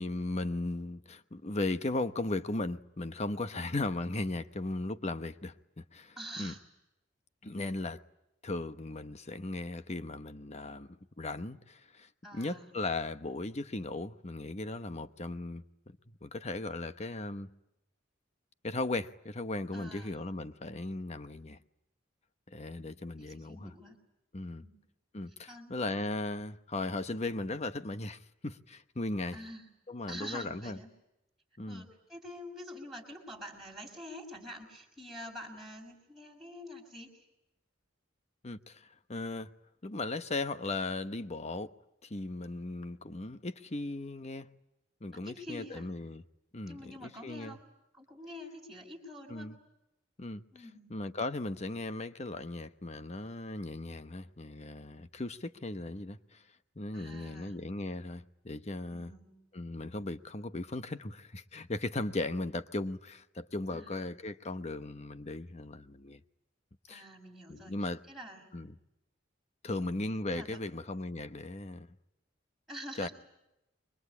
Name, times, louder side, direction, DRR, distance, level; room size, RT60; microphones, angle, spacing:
voice 1, 0.0-6.5 7.4-8.0 8.4-17.5 18.6-21.6 22.5-23.7 24.3-24.6 25.1-29.4 29.9-30.8 31.6-31.9 38.4-39.5 39.8-41.7 42.0-44.5 45.0-46.2 46.5-47.6 49.3-49.6 50.2-50.4 50.9-56.4 56.8-59.1 59.5-66.2 66.9-67.0 67.5-68.0 68.5-68.8 69.6-72.0 73.0-73.1, left 2 dB, 35° left, 1.0 m, -37 dB
voice 2, 6.2-6.6 7.4-7.7 12.2-12.7 19.7-20.2 23.2-24.0 24.6-24.8 25.5-25.9 29.3-29.7 30.1-30.9 31.7-37.3 45.2-45.9 46.7-47.6 47.9-49.5 50.5-51.0 56.9-57.5 58.9-59.4 63.7-64.0 66.9-68.5 69.7-69.9 70.3-70.6 72.7-73.1, equal, ahead, 5.9 m, -47 dB
29.5 x 23.5 x 8.7 m
head